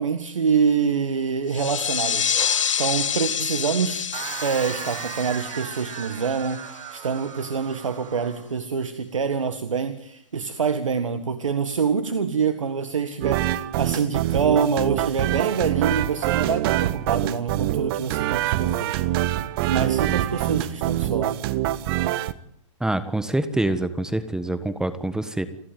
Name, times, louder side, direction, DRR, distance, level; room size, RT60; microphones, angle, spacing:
voice 1, 0.0-2.4 2.8-19.0 19.7-21.4, right 6 dB, 90° right, 10 dB, 1.8 m, -26 dB
sound 1, 1.5-6.8, left 8 dB, 80° left, 2.0 m, -27 dB
sound 2, 4.1-8.5, right 12 dB, 35° right, 1.7 m, -37 dB
sound 3, 13.2-22.3, right 14 dB, 50° right, 1.4 m, -25 dB
voice 2, 22.8-25.5, right 1 dB, 5° right, 12 dB, 1.4 m, -25 dB
29.5 x 12.0 x 9.3 m, 0.71 s
hypercardioid pair, 120°, 16 cm